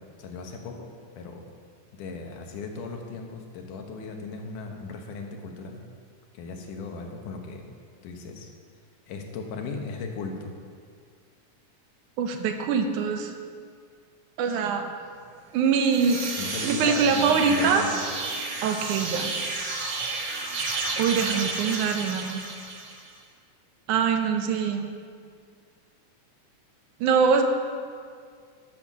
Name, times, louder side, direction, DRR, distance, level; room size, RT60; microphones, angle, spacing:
voice 1, 0.2-0.9 1.2-1.4 1.9-5.8 6.3-7.7 8.0-8.5 9.1-10.5 16.4-18.1, left 4 dB, 80° left, 3 dB, 2.7 m, -37 dB
voice 2, 12.2-13.3 14.4-14.9 15.5-16.3 16.6-17.9 18.6-19.3 21.0-22.4 23.9-24.9 27.0-27.4, right 6 dB, 80° right, 5 dB, 2.2 m, -23 dB
sound 1, 15.7-23.1, right 3 dB, 60° right, 1.2 m, -31 dB
12.5 x 7.2 x 6.1 m, 2.1 s
omnidirectional pair, 3.6 m